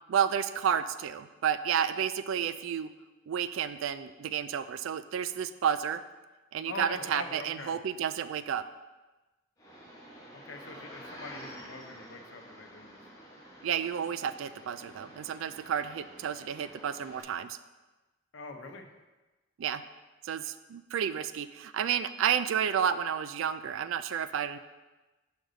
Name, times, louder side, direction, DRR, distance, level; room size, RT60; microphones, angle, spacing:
voice 1, 0.1-2.9 3.3-6.0 6.5-8.7 13.6-17.6 19.6-19.8 20.2-24.6, right 8 dB, 75° right, 13 dB, 0.3 m, -31 dB
voice 2, 6.6-7.8 10.3-13.0 18.3-18.9, left 3 dB, 70° left, 5 dB, 0.7 m, -43 dB
sound 1, 9.6-17.2, equal, 15° left, 1.2 m, -49 dB
6.4 x 5.2 x 3.9 m, 1.2 s
head